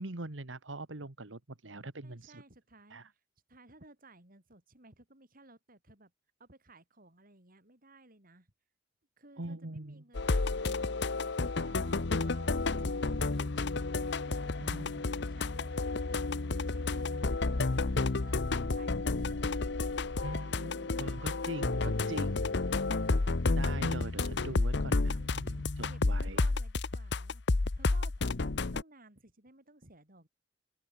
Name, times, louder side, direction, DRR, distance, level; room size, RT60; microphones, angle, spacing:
voice 1, 0.0-2.4 2.9-3.1 9.4-10.0 14.6-15.0 20.2-22.5 23.6-26.4, right 2 dB, 90° right, 1.8 m, -42 dB
voice 2, 2.0-3.2 3.5-6.1 6.4-8.5 9.2-11.2 11.6-16.2 16.6-19.7 23.8-24.0 24.2-24.4 24.9-30.3, right 2 dB, 50° right, 7.8 m, -58 dB
sound 1, 10.2-28.8, left 3 dB, 65° left, 0.9 m, -31 dB
open air
head